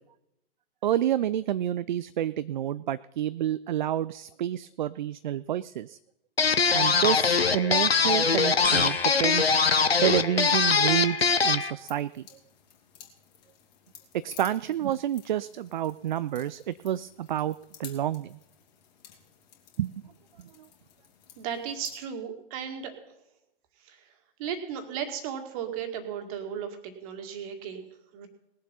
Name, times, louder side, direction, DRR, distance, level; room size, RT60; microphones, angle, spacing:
voice 1, 0.8-6.0 6.7-9.5 10.0-12.2 14.2-18.4 19.8-20.1, right 11 dB, 50° right, 16 dB, 0.4 m, -29 dB
sound 1, 6.4-11.7, left 5 dB, 85° left, 0.8 m, -22 dB
sound 2, 8.6-10.4, left 4 dB, 5° left, 1.2 m, -37 dB
sound 3, 11.8-22.0, left 8 dB, 45° left, 2.9 m, -53 dB
voice 2, 21.4-23.0 23.8-24.0 24.4-28.3, right 8 dB, 35° right, 6 dB, 2.1 m, -35 dB
19.5 x 7.5 x 5.6 m, 0.85 s
figure-of-eight pair, 110°, 30 cm